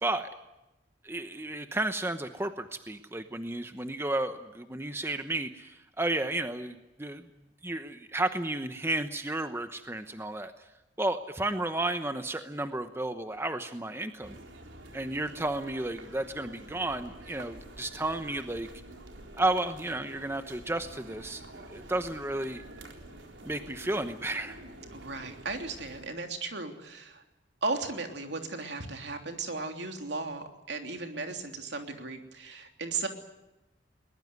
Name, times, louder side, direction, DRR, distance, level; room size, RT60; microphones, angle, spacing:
voice 1, 1.0-7.3 7.6-10.7 11.0-14.4 14.9-18.7 19.3-22.6 23.5-24.6, right 2 dB, 15° right, 8 dB, 0.9 m, -32 dB
sound 1, 14.2-26.1, right 1 dB, 90° right, 3.9 m, -48 dB
voice 2, 24.9-27.2 27.6-33.1, right 3 dB, 65° right, 4 dB, 3.2 m, -36 dB
22.0 x 20.5 x 9.6 m, 0.98 s
head